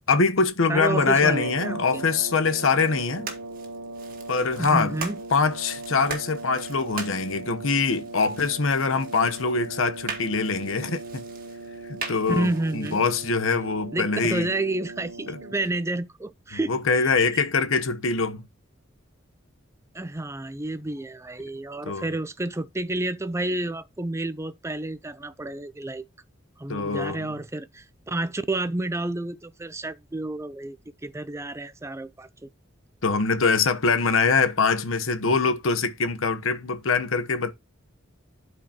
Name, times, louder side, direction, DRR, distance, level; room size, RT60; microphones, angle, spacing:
voice 1, 0.1-3.3 4.3-4.9 5.3-11.2 11.9-14.5 15.3-15.4 16.5-18.5 21.8-22.1 26.7-27.3 33.0-37.5, left 4 dB, 90° left, 0.9 m, -23 dB
voice 2, 0.7-2.0 4.6-5.2 12.3-13.0 13.9-17.4 19.9-26.0 26.6-30.8 31.0-32.5, right 2 dB, 15° right, 0.5 m, -30 dB
sound 1, 0.8-15.9, right 2 dB, 75° right, 0.9 m, -38 dB
sound 2, 2.5-13.3, right 4 dB, 45° right, 1.8 m, -41 dB
12.0 x 4.8 x 2.8 m
head